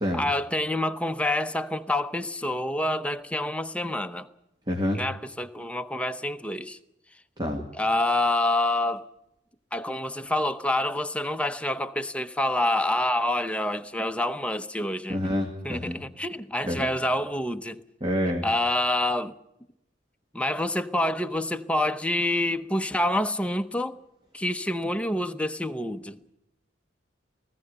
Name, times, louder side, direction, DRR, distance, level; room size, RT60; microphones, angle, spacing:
voice 1, 0.1-4.3 4.9-6.8 7.7-9.1 9.7-15.2 15.6-17.8 18.4-19.3 20.3-24.0 24.3-26.2, left 1 dB, 5° left, 0.8 m, -27 dB
voice 2, 4.7-5.0 7.4-7.6 15.1-16.0 16.6-16.9 18.0-18.4, equal, 25° right, 1.9 m, -27 dB
19.0 x 15.5 x 10.0 m
head